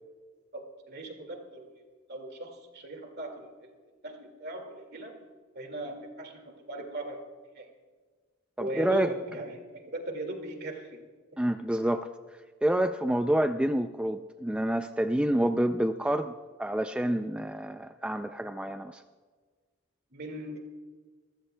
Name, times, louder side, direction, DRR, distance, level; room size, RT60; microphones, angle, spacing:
voice 1, 0.5-1.7 2.1-3.7 4.0-5.1 5.5-7.2 7.5-7.7 8.6-11.0 20.1-20.6, right 1 dB, 55° right, 4 dB, 2.1 m, -39 dB
voice 2, 8.6-9.1 11.4-12.1 12.6-16.3 16.6-19.0, right 1 dB, 5° right, 8 dB, 0.3 m, -28 dB
26.0 x 15.0 x 2.2 m, 1.5 s
head